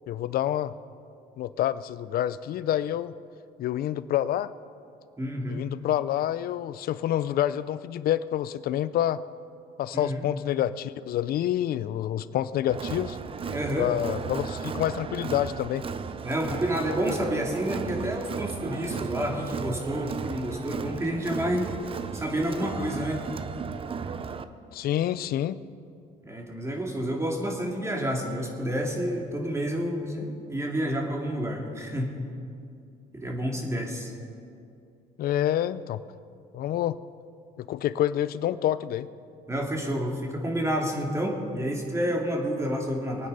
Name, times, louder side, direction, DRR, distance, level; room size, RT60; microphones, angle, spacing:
voice 1, 0.1-0.7 1.4-3.1 3.6-4.5 5.5-9.2 9.8-13.2 13.8-15.9 24.7-25.6 35.2-36.0 36.5-37.0 37.6-39.1, left 12 dB, 60° left, 15 dB, 0.5 m, -27 dB
voice 2, 5.2-5.6 9.9-10.2 13.5-13.9 16.2-21.7 22.1-23.2 26.3-32.2 33.1-34.1 39.5-43.3, equal, 15° right, 1 dB, 2.5 m, -29 dB
Crowd, 12.7-24.4, right 6 dB, 35° right, 0.7 m, -35 dB
22.5 x 9.4 x 5.5 m, 2.5 s
cardioid pair, 110°, 17 cm